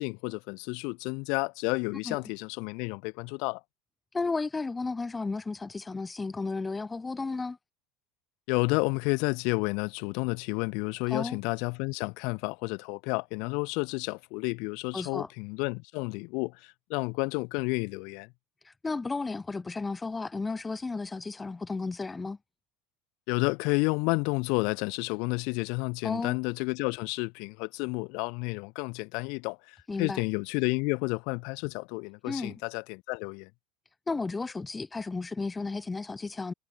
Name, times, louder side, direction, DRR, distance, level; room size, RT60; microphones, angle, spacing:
voice 1, 0.0-3.6 8.5-18.3 23.3-33.5, left 31 dB, 65° left, 2.4 m, -31 dB
voice 2, 4.1-7.6 11.1-11.4 14.9-15.3 18.6-22.4 26.0-26.4 29.9-30.2 32.3-32.5 34.1-36.5, left 3 dB, 10° left, 0.9 m, -33 dB
cardioid pair, 160°, 0 cm